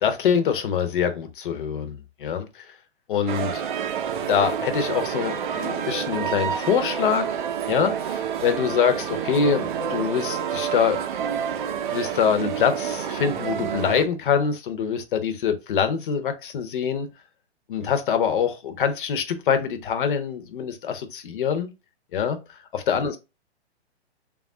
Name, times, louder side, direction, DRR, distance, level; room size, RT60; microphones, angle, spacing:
voice 1, 0.0-2.7 3.1-3.6 4.1-7.4 7.7-11.0 11.9-17.1 17.7-21.7 22.1-22.4 22.7-23.2, left 7 dB, 50° left, 0.8 m, -24 dB
sound 1, 3.3-14.1, right 8 dB, 50° right, 0.6 m, -28 dB
3.4 x 2.4 x 3.6 m
figure-of-eight pair, 125°, 33 cm